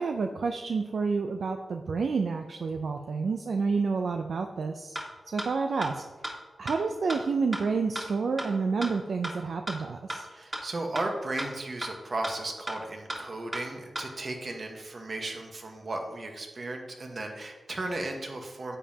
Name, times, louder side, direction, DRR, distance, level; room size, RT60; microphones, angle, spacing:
voice 1, 0.0-5.0 5.3-6.0 6.6-10.3, right 4 dB, 70° right, 5 dB, 0.5 m, -29 dB
sound 1, 4.9-5.0 5.4-5.5 5.8-5.9 6.2-6.3 6.7-6.8 7.1-7.2 7.5-7.6 7.9-8.0 8.4-8.5 8.8-8.9 9.2-9.3 9.7-9.8 10.1-10.2 10.5-10.6 10.9-11.0 11.4-11.5 11.8-11.9 12.2-12.3 12.7-12.8 13.1-13.2 13.5-13.6 13.9-14.0, right 1 dB, 20° right, 1.8 m, -33 dB
voice 2, 10.2-18.8, right 2 dB, 50° right, 3 dB, 1.3 m, -35 dB
9.9 x 7.3 x 2.9 m, 1.2 s
cardioid pair, 80°, 0 cm